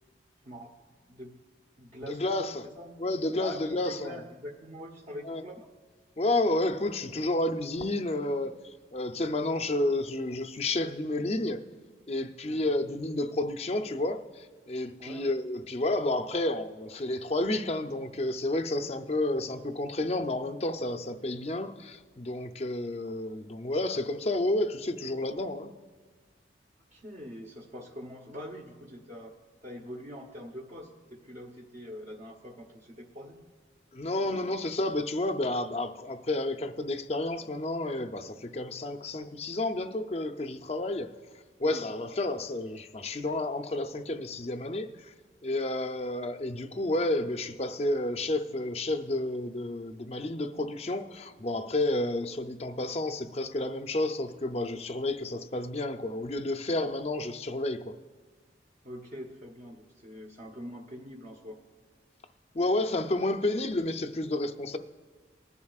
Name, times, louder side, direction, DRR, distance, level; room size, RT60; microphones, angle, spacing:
voice 1, 1.1-1.4 1.8-3.0 3.4-5.7 12.4-12.7 15.0-15.3 26.9-29.3 29.6-33.5 41.6-41.9 58.8-61.6, equal, 40° right, 0.9 m, -44 dB
voice 2, 2.0-2.7 3.0-4.2 5.2-5.4 6.2-11.6 12.1-25.7 33.9-41.1 41.6-45.1 45.4-58.0 62.5-64.8, left 2 dB, 35° left, 0.5 m, -31 dB
20.5 x 11.0 x 2.4 m
head